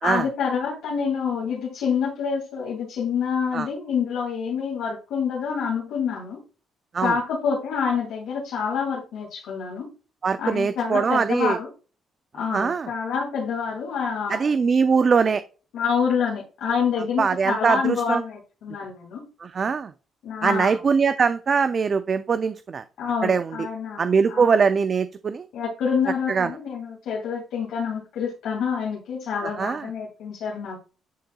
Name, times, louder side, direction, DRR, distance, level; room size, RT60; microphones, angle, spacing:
voice 1, 0.0-6.4 7.0-9.9 10.4-11.7 12.4-14.5 15.7-19.2 20.2-20.8 23.0-24.5 25.5-30.8, left 6 dB, 85° left, -4 dB, 2.6 m, -27 dB
voice 2, 10.2-11.6 12.5-12.9 14.3-15.4 17.2-18.2 19.4-19.9 20.4-22.8 23.2-23.5 24.0-25.4 26.3-26.5 29.4-29.9, right 5 dB, 45° right, 11 dB, 0.4 m, -22 dB
10.5 x 3.9 x 2.3 m, 0.35 s
cardioid pair, 90°, 0 cm